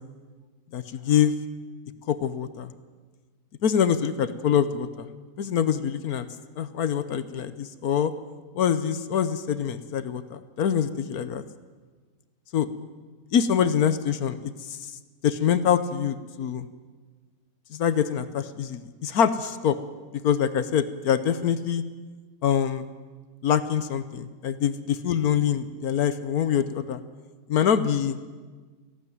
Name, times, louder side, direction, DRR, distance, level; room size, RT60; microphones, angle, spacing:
voice 1, 0.7-1.3 2.1-2.7 3.6-5.1 5.4-6.3 6.6-8.1 8.6-11.4 12.5-12.7 13.3-14.8 15.2-16.7 17.7-19.8 20.2-21.8 22.4-22.9 23.4-27.0 27.5-28.2, left 8 dB, 75° left, 12 dB, 1.4 m, -25 dB
18.5 x 15.5 x 9.3 m, 1.4 s
omnidirectional pair, 1.6 m